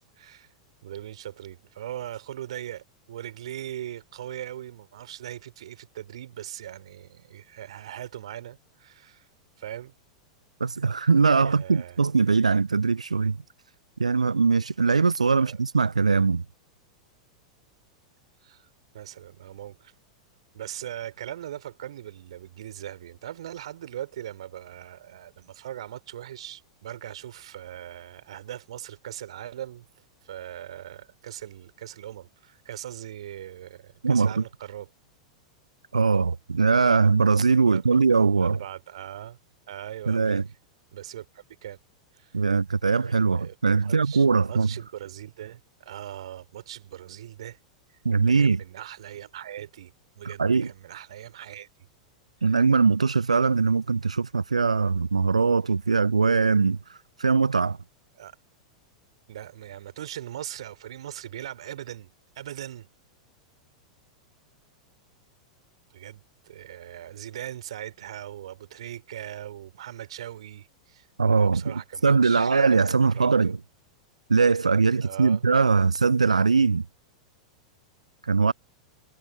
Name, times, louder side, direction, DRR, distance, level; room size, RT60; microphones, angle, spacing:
voice 1, 0.2-0.5 0.8-9.3 9.6-9.9 11.4-12.0 15.4-15.6 18.4-18.7 18.9-19.9 20.5-29.9 30.2-34.9 37.7-38.0 38.4-39.4 39.7-40.4 40.9-41.8 42.1-42.3 43.4-43.6 43.8-47.6 48.4-51.7 58.2-58.4 59.3-62.9 65.9-71.1 71.3-73.5 75.0-75.4, right 11 dB, 60° right, 2.9 m, -40 dB
voice 2, 10.6-13.4 14.0-16.4 34.0-34.4 35.9-38.6 40.1-40.4 42.3-44.7 48.0-48.6 50.2-50.7 52.4-57.8 71.2-73.6 74.3-76.9 78.2-78.5, right 4 dB, 80° right, 0.4 m, -21 dB
figure-of-eight pair, 95°, 3 cm